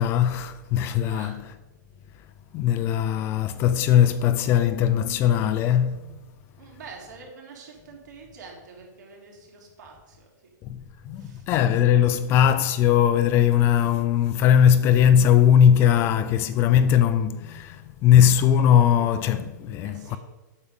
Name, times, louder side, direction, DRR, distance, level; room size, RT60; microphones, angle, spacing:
voice 1, 0.0-1.3 2.5-6.0 10.7-20.2, left 9 dB, 25° left, 0.4 m, -20 dB
voice 2, 1.0-1.4 6.6-10.3 11.1-11.5 19.8-20.2, right 4 dB, 65° right, 3.4 m, -46 dB
8.4 x 7.4 x 5.2 m
hypercardioid pair, 155°, 10 cm